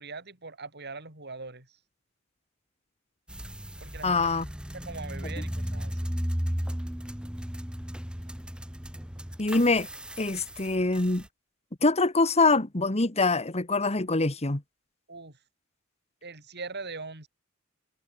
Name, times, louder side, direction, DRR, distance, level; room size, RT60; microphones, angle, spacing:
voice 1, 0.0-1.8 3.8-4.3 4.7-6.1 15.1-15.4 16.2-17.3, right 3 dB, 55° right, 6.4 m, -41 dB
sound 1, 3.3-11.3, equal, 5° right, 1.2 m, -35 dB
voice 2, 4.0-4.5 9.4-9.9 10.2-11.2 11.8-14.6, left 3 dB, 30° left, 1.7 m, -24 dB
head